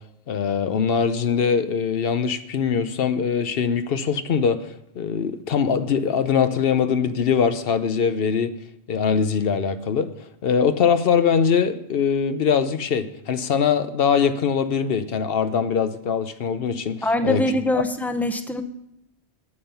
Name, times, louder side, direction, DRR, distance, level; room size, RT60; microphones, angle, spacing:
voice 1, 0.3-8.5 8.9-10.1 10.4-17.4 17.7-17.8, left 6 dB, 65° left, 0.9 m, -22 dB
voice 2, 17.0-18.6, left 1 dB, ahead, 0.6 m, -23 dB
9.6 x 8.6 x 5.5 m
omnidirectional pair, 1.1 m